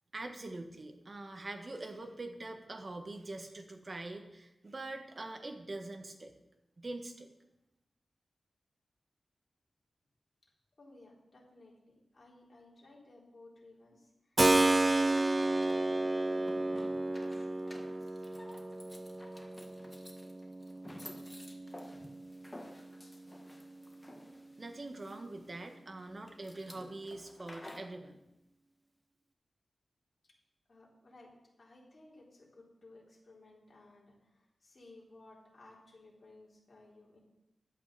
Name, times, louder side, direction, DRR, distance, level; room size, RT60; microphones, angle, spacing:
voice 1, 0.1-6.3 6.8-7.3 24.6-28.2, right 2 dB, 40° right, 5 dB, 1.5 m, -44 dB
voice 2, 10.8-18.2 22.4-22.5 30.2-30.4 30.7-37.2, left 2 dB, 45° left, -3 dB, 4.0 m, -58 dB
Keyboard (musical), 14.4-23.0, right 2 dB, 20° right, 0.5 m, -32 dB
sound 1, 14.9-28.0, left 1 dB, 15° left, 1.5 m, -53 dB
12.0 x 8.2 x 6.8 m, 0.91 s
wide cardioid pair, 95°, 0 cm